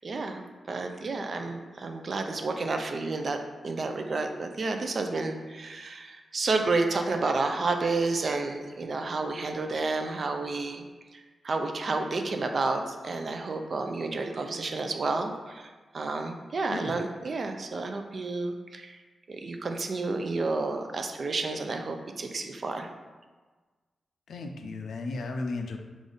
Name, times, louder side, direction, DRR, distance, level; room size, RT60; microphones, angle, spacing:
voice 1, 0.0-3.4 3.6-10.8 11.1-19.0 19.3-22.9, right 3 dB, 50° right, 5 dB, 0.4 m, -30 dB
voice 2, 24.3-25.8, left 3 dB, 85° left, 4 dB, 0.3 m, -34 dB
3.4 x 2.4 x 3.9 m, 1.3 s
wide cardioid pair, 95°, 0 cm